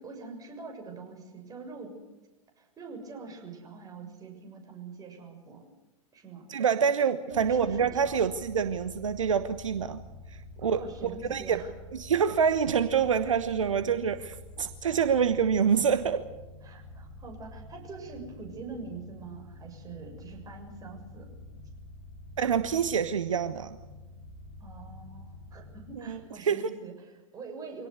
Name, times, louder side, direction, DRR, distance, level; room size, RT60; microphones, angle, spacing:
voice 1, 0.0-2.0 2.6-5.7 6.1-6.5 7.3-8.2 10.7-11.7 16.6-21.3 24.6-27.9, right 4 dB, 20° right, 3 dB, 7.0 m, -44 dB
voice 2, 6.5-10.0 10.6-10.8 11.3-11.6 11.9-16.2 22.4-23.8 26.1-26.6, right 7 dB, 70° right, 12 dB, 1.2 m, -26 dB
sound 1, 7.3-26.0, left 2 dB, 70° left, 5.9 m, -47 dB
24.5 x 18.5 x 8.2 m, 1.1 s
figure-of-eight pair, 95°, 17 cm